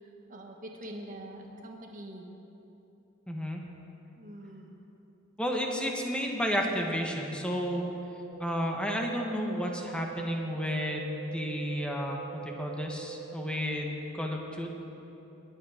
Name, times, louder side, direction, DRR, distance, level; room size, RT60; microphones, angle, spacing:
voice 1, 0.3-2.3 4.2-4.8, right 1 dB, 45° right, 1 dB, 1.4 m, -44 dB
voice 2, 3.3-3.6 5.4-7.8 8.4-14.7, equal, 5° left, 1 dB, 1.4 m, -32 dB
sound 1, 8.3-13.3, right 12 dB, 65° right, 2.5 m, -44 dB
22.0 x 8.8 x 5.1 m, 3.0 s
head